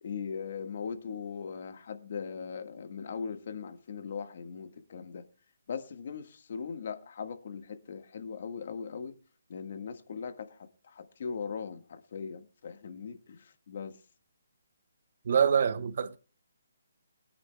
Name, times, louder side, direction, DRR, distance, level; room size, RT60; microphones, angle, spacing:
voice 1, 0.0-5.2 5.7-9.2 9.5-14.0, left 6 dB, 50° left, 1.6 m, -39 dB
voice 2, 15.2-16.2, right 7 dB, 50° right, 0.9 m, -25 dB
22.5 x 9.8 x 2.3 m
hypercardioid pair, 165°, 0 cm